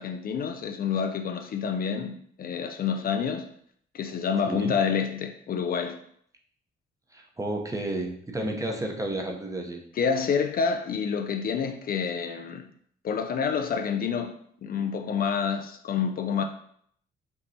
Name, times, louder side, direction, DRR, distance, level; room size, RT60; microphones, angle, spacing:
voice 1, 0.0-3.5 3.9-6.0 9.9-12.6 13.0-14.3 14.6-16.4, left 6 dB, 50° left, 0.4 m, -28 dB
voice 2, 7.1-9.8, right 1 dB, 15° right, 0.8 m, -31 dB
5.3 x 2.9 x 2.7 m
cardioid pair, 90°, 20 cm